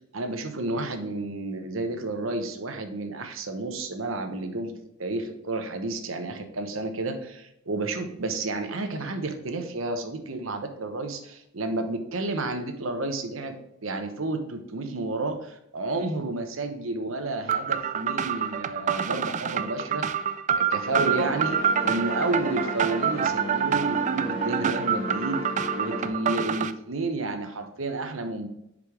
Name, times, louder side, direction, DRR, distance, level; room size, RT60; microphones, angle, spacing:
voice 1, 0.1-4.7 5.0-13.6 13.8-20.1 20.5-25.4 25.7-28.5, right 2 dB, 85° right, 6 dB, 1.0 m, -31 dB
sound 1, 17.5-26.7, right 7 dB, 35° right, 0.3 m, -27 dB
sound 2, 20.8-26.1, left 1 dB, 55° left, 1.8 m, -35 dB
5.3 x 5.0 x 4.9 m, 0.80 s
head